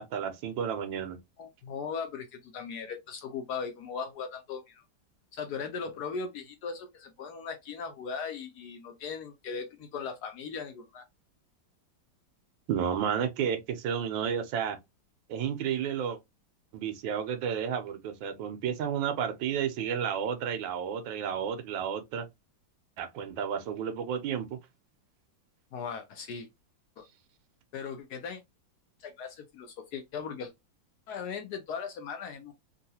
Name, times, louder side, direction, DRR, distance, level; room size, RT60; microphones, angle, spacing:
voice 1, 0.0-1.2 12.7-14.8 15.3-16.2 16.7-22.3 23.0-24.6, right 8 dB, 85° right, 1.4 m, -32 dB
voice 2, 1.4-4.8 5.3-11.0 25.7-26.5 27.0-27.1 27.7-28.4 29.0-30.5 31.1-32.5, left 6 dB, 70° left, 1.0 m, -38 dB
3.7 x 2.4 x 2.7 m
omnidirectional pair, 2.1 m